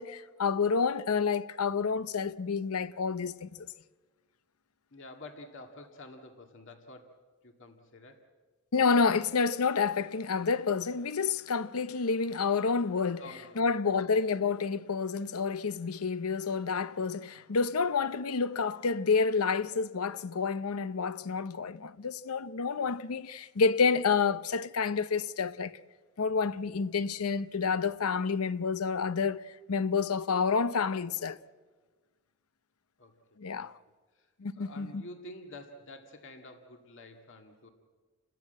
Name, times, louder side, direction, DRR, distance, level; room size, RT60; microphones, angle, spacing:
voice 1, 0.0-3.7 8.7-13.2 13.6-25.8 26.2-31.4 33.4-33.8 34.4-35.0, left 5 dB, 85° left, 0.7 m, -29 dB
voice 2, 4.9-8.2 13.2-13.8 33.0-33.7 34.1-37.7, left 2 dB, 60° left, 2.0 m, -49 dB
29.5 x 13.5 x 8.9 m
head